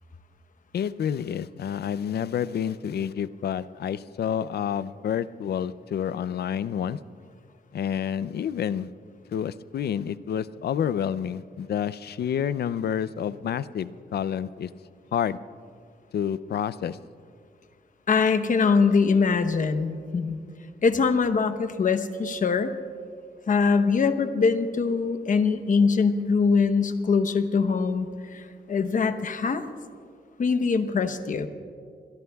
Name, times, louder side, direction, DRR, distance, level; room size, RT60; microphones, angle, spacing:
voice 1, 0.7-7.0 7.7-8.9 9.3-14.7 15.1-15.4 16.1-17.0, left 8 dB, 70° left, 16 dB, 0.5 m, -29 dB
voice 2, 18.1-20.4 20.8-22.7 23.5-29.6 30.4-31.5, left 5 dB, 50° left, 9 dB, 0.9 m, -23 dB
26.5 x 22.0 x 2.3 m, 2.2 s
wide cardioid pair, 130°, 17 cm